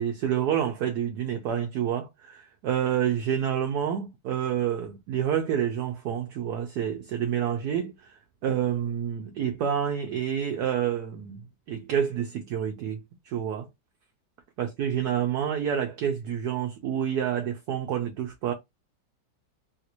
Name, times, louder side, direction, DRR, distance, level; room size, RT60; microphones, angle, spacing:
voice 1, 0.0-11.4 11.7-13.7 14.6-18.5, right 9 dB, 70° right, 1.0 m, -28 dB
3.2 x 2.5 x 2.8 m
omnidirectional pair, 2.1 m